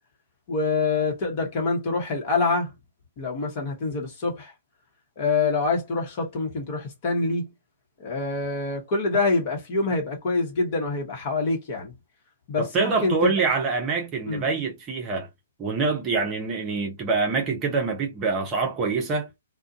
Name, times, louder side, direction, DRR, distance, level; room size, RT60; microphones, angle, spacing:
voice 1, 0.5-2.7 3.2-4.5 5.2-7.5 8.0-11.9 12.5-13.3 14.3-14.4, left 3 dB, 35° left, 1.1 m, -26 dB
voice 2, 12.6-15.3 15.6-19.3, right 4 dB, 20° right, 0.7 m, -25 dB
2.4 x 2.2 x 2.6 m
figure-of-eight pair, 120°, 0 cm